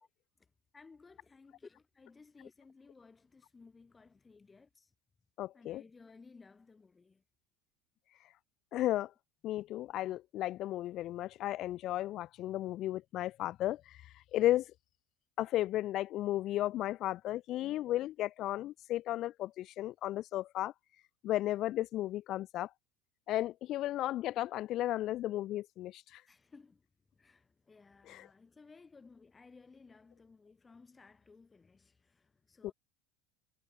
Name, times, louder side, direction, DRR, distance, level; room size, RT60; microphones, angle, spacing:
voice 1, 0.7-4.9 5.5-7.2 26.3-26.9 27.1-32.7, left 4 dB, 20° left, 7.2 m, -58 dB
voice 2, 5.4-5.8 8.7-9.1 9.4-13.8 14.3-14.6 15.4-20.7 21.2-22.7 23.3-26.0 28.1-28.3 32.6-32.7, left 14 dB, 50° left, 0.4 m, -34 dB
hypercardioid pair, 75°, 0 cm